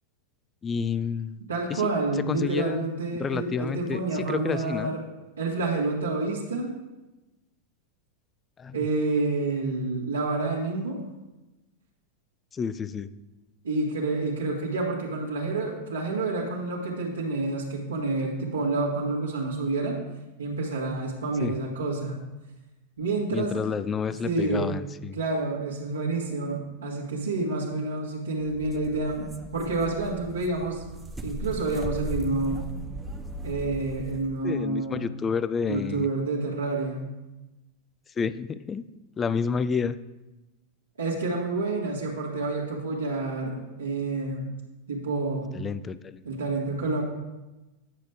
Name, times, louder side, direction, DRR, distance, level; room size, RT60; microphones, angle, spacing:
voice 1, 0.6-1.4 1.7-1.9 2.3-5.0 8.6-8.9 12.5-13.1 21.4-21.6 23.3-25.2 34.4-36.1 38.2-38.8 39.2-40.0 45.5-46.3, left 6 dB, 20° left, 15 dB, 0.4 m, -30 dB
voice 2, 1.5-5.0 5.4-6.7 8.7-11.0 13.6-20.0 20.4-22.2 23.0-23.7 24.2-24.8 25.1-29.3 29.5-30.8 31.2-32.6 33.4-35.0 35.7-37.1 41.0-44.5 44.9-45.6 46.2-47.0, right 3 dB, 70° right, -4 dB, 1.7 m, -28 dB
sound 1, 28.5-34.4, equal, 10° right, 0.7 m, -38 dB
10.0 x 6.5 x 3.4 m, 1.0 s
figure-of-eight pair, 90°, 0 cm